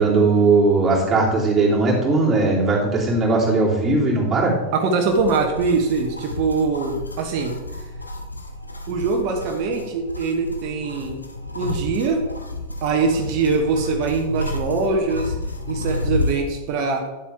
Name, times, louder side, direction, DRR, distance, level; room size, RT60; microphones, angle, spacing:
voice 1, 0.0-4.5, right 3 dB, 15° right, -6 dB, 3.2 m, -18 dB
voice 2, 4.7-7.5 8.9-11.2 11.5-12.2 12.8-15.3 15.7-17.0, right 4 dB, 45° right, 3 dB, 1.2 m, -22 dB
sound 1, 5.1-16.4, left 2 dB, 80° left, 0.9 m, -31 dB
10.0 x 7.3 x 3.5 m, 1.1 s
figure-of-eight pair, 90°, 0 cm